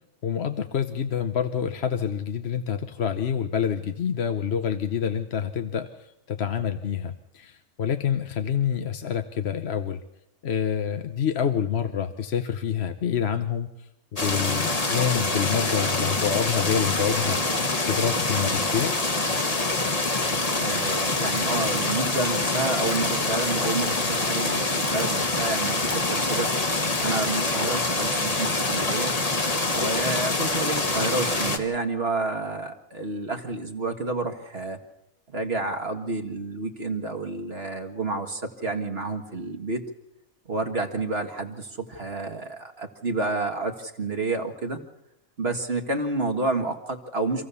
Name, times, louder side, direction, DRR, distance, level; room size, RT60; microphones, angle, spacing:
voice 1, 0.2-10.0 10.4-13.9 14.2-17.6 17.8-18.9, left 8 dB, 55° left, 8 dB, 1.1 m, -27 dB
sound 1, 14.2-31.6, left 2 dB, 30° left, 1.5 m, -25 dB
voice 2, 20.6-26.5 27.0-29.1 29.8-34.8 35.3-39.8 40.5-44.8 45.4-47.5, right 3 dB, 50° right, 5 dB, 1.8 m, -29 dB
26.5 x 15.5 x 6.9 m, 0.90 s
omnidirectional pair, 1.4 m